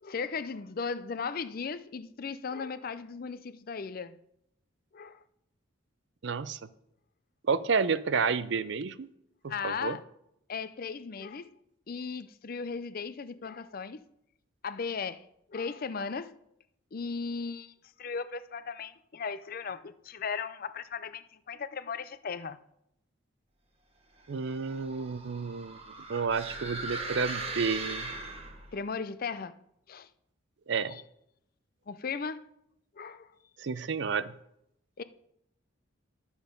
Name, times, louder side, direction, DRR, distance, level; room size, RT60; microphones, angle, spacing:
voice 1, 0.0-4.2 4.9-5.2 9.5-10.0 10.5-11.5 11.9-14.0 14.6-15.2 15.5-16.3 16.9-22.6 28.7-29.6 29.9-30.1 30.9-31.0 31.9-32.4 33.0-33.3 35.0-35.1, left 5 dB, 45° left, 0.5 m, -37 dB
voice 2, 6.2-6.6 7.5-9.1 9.4-10.0 24.3-25.8 26.1-28.1 30.7-31.0 33.6-34.3, right 5 dB, 60° right, 0.5 m, -30 dB
sound 1, 24.3-28.8, right 3 dB, 30° right, 1.3 m, -39 dB
11.5 x 7.1 x 5.2 m
head